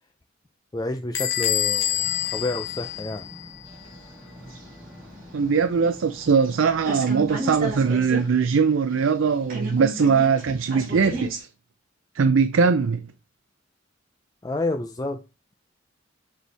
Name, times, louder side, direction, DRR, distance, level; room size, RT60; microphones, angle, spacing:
voice 1, 0.7-3.3 14.4-15.2, left 2 dB, 20° left, 0.4 m, -29 dB
Bell / Squeak, 1.1-3.7, left 11 dB, 75° left, 1.1 m, -27 dB
sound 1, 2.0-8.1, left 1 dB, 5° right, 2.6 m, -46 dB
sound 2, 3.7-6.5 6.8-8.3 8.5-8.6 8.9-11.4, right 2 dB, 45° right, 2.9 m, -34 dB
voice 2, 5.3-11.5 12.1-13.1, right 5 dB, 80° right, 0.5 m, -21 dB
6.7 x 4.4 x 3.4 m
head